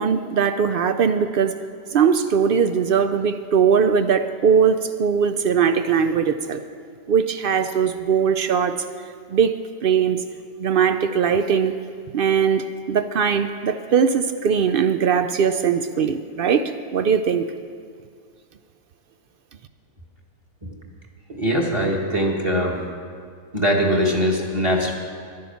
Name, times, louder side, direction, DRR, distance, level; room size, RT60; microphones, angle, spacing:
voice 1, 0.0-1.5 1.9-6.6 7.1-8.9 9.3-9.5 9.8-10.2 10.6-11.7 12.1-17.4, right 7 dB, 65° right, 10 dB, 0.5 m, -20 dB
voice 2, 21.4-22.8 23.5-24.9, equal, 20° right, 0 dB, 1.5 m, -21 dB
11.5 x 10.5 x 7.0 m, 2.2 s
omnidirectional pair, 1.5 m